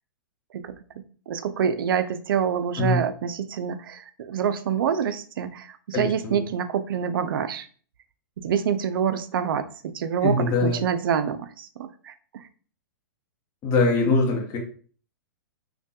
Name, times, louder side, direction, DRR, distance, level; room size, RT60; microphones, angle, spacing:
voice 1, 0.5-7.7 8.4-12.5, right 8 dB, 75° right, 10 dB, 0.4 m, -27 dB
voice 2, 5.9-6.4 10.2-10.8 13.6-14.6, left 3 dB, 30° left, -1 dB, 0.9 m, -22 dB
3.2 x 2.2 x 2.8 m, 0.43 s
hypercardioid pair, 130°, 12 cm